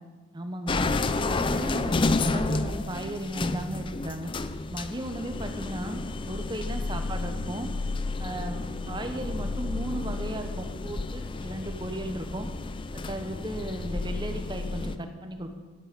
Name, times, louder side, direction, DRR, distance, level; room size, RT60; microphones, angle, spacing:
voice 1, 0.3-0.8 1.3-4.3 4.6-7.7 8.2-12.5 12.9-15.6, right 1 dB, 20° right, 6 dB, 1.1 m, -35 dB
sound 1, 0.7-15.0, left 3 dB, 25° left, 0.4 m, -31 dB
12.0 x 8.7 x 6.8 m, 1.4 s
head